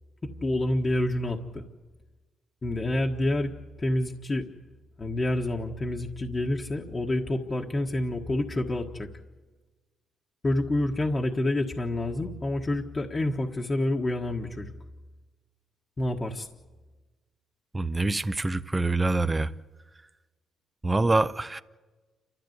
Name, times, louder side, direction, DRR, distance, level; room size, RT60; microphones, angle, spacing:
voice 1, 0.4-1.7 2.6-4.4 5.0-9.1 10.4-14.7 16.0-16.5, left 1 dB, 30° left, 1.5 m, -28 dB
voice 2, 17.7-19.5 20.8-21.6, right 2 dB, 20° right, 0.8 m, -25 dB
29.0 x 14.0 x 8.0 m
cardioid pair, 90°, 0 cm